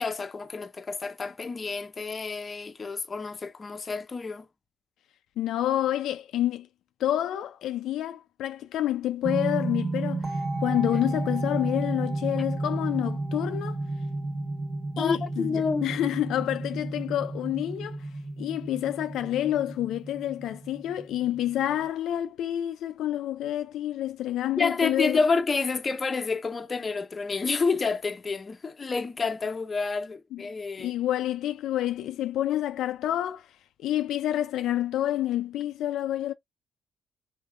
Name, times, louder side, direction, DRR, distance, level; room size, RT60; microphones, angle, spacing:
voice 1, 0.0-4.5 15.0-15.9 24.6-30.9, left 4 dB, 30° left, 0.6 m, -29 dB
voice 2, 5.4-6.7 7.0-10.3 10.6-13.8 15.0-18.0 18.4-25.2 30.3-30.4 30.8-33.5 33.8-36.3, left 12 dB, 80° left, 0.3 m, -28 dB
sound 1, 9.2-21.9, right 2 dB, 40° right, 1.0 m, -32 dB
3.4 x 3.3 x 2.3 m
cardioid pair, 90°, 0 cm